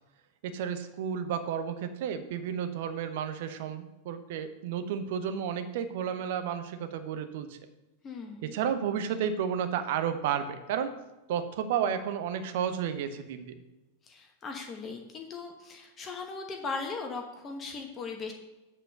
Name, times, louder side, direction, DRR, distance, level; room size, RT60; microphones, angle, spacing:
voice 1, 0.4-7.6 8.4-11.0 11.3-13.6, right 8 dB, 50° right, 9 dB, 0.9 m, -32 dB
voice 2, 8.0-8.5 14.0-18.3, left 4 dB, 25° left, 3 dB, 1.1 m, -38 dB
8.1 x 4.3 x 6.4 m, 1.1 s
figure-of-eight pair, 90°, 0 cm